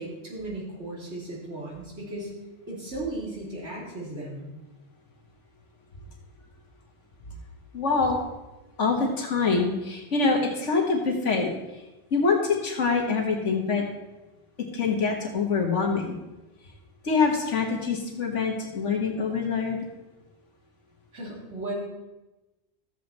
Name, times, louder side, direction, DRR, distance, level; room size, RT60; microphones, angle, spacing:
voice 1, 0.0-2.3 2.7-4.5 21.1-21.7, right 2 dB, 65° right, -4 dB, 3.3 m, -36 dB
voice 2, 7.7-8.2 8.8-11.8 12.1-13.8 14.7-16.2 17.0-19.8, left 4 dB, 80° left, 1 dB, 1.7 m, -25 dB
13.0 x 7.9 x 4.2 m, 1.1 s
omnidirectional pair, 1.2 m